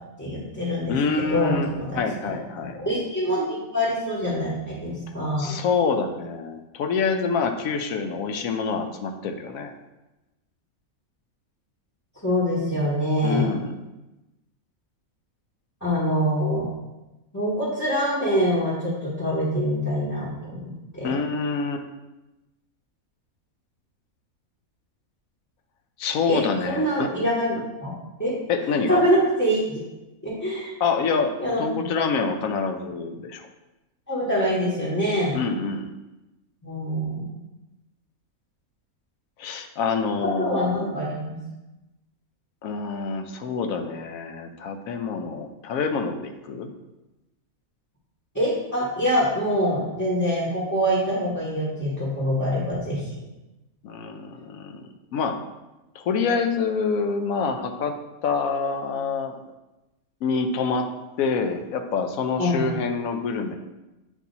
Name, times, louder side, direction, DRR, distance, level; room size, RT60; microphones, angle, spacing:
voice 1, 0.2-2.0 2.7-5.6 12.2-13.5 15.8-16.7 17.3-21.1 26.3-27.9 28.2-28.3 28.9-29.8 30.2-30.7 31.4-31.6 34.1-35.4 36.6-37.3 40.2-41.4 48.3-53.1 62.4-62.6, equal, 10° left, -8 dB, 1.4 m, -25 dB
voice 2, 0.9-1.7 1.9-2.8 5.4-9.7 13.2-13.7 21.0-21.8 26.0-27.1 27.6-27.7 28.5-29.0 30.8-33.5 35.3-35.9 39.4-40.9 42.6-46.7 53.8-55.4 55.9-57.9 58.2-59.4 60.2-60.9 61.2-63.6, left 5 dB, 75° left, 6 dB, 1.0 m, -26 dB
8.3 x 2.8 x 4.0 m, 1.0 s
omnidirectional pair, 1.5 m